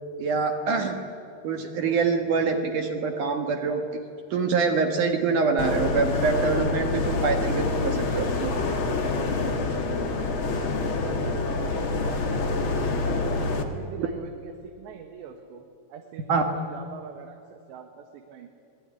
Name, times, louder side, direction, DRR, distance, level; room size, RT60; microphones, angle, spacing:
voice 1, 0.2-1.0 1.4-4.0 4.3-8.5 14.0-14.1 16.3-16.4, right 4 dB, 60° right, 5 dB, 2.5 m, -25 dB
sound 1, 5.6-13.6, left 3 dB, 50° left, 1.6 m, -26 dB
voice 2, 11.0-13.3 13.7-18.5, right 7 dB, 75° right, 4 dB, 3.6 m, -43 dB
25.5 x 20.5 x 9.9 m, 2.5 s
omnidirectional pair, 5.1 m